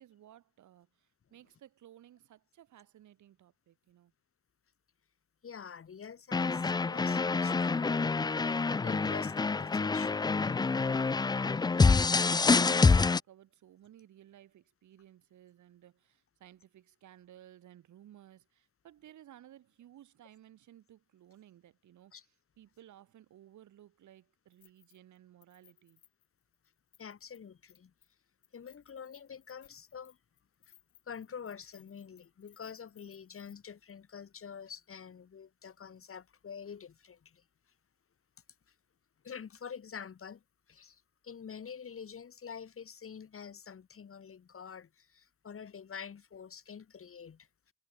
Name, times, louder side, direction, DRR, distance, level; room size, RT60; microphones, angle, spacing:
voice 1, 0.0-4.1 12.0-26.0, right 12 dB, 75° right, 4.3 m, -58 dB
voice 2, 5.4-8.0 8.4-10.7 11.7-11.8 22.1-22.3 27.0-27.9 28.5-30.2 30.7-30.8 31.1-37.4 38.7-38.8 39.2-40.4 40.7-47.5, left 7 dB, 45° left, 5.1 m, -47 dB
sound 1, 6.3-13.2, left 4 dB, 15° left, 0.4 m, -27 dB
Keys jangling, 24.5-25.2 25.4-27.4 27.7-28.1 28.4-33.6 33.9-34.0, left 12 dB, 75° left, 4.2 m, -65 dB
cardioid pair, 90°, 30 cm